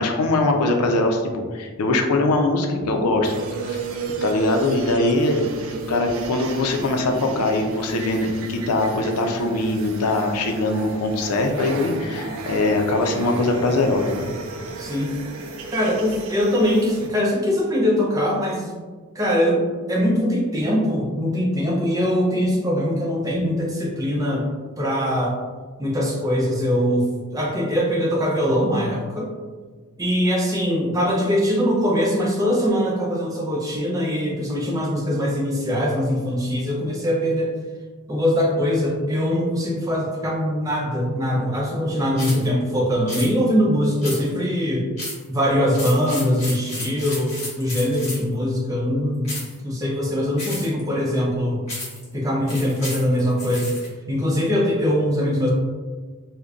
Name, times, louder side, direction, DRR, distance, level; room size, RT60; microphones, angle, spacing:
voice 1, 0.0-3.3 3.7-3.8 4.2-5.4 5.9-14.2, left 2 dB, 90° left, 3 dB, 0.5 m, -22 dB
sound 1, 3.2-17.1, right 3 dB, 65° right, 0.4 m, -33 dB
voice 2, 14.8-15.1 15.7-18.7 19.1-24.5 24.8-25.4 25.8-29.3 30.0-37.5 38.1-44.9 45.3-49.3 49.6-51.6 52.1-53.7 54.1-55.5, equal, 15° right, -3 dB, 0.5 m, -22 dB
sound 2, 42.2-42.5 43.1-43.3 44.0-44.4 45.0-45.3 45.7-48.3 49.2-49.6 50.4-50.8 51.7-52.0 52.5-53.9, left 1 dB, 30° left, 1.2 m, -33 dB
5.0 x 2.1 x 2.3 m, 1.5 s
head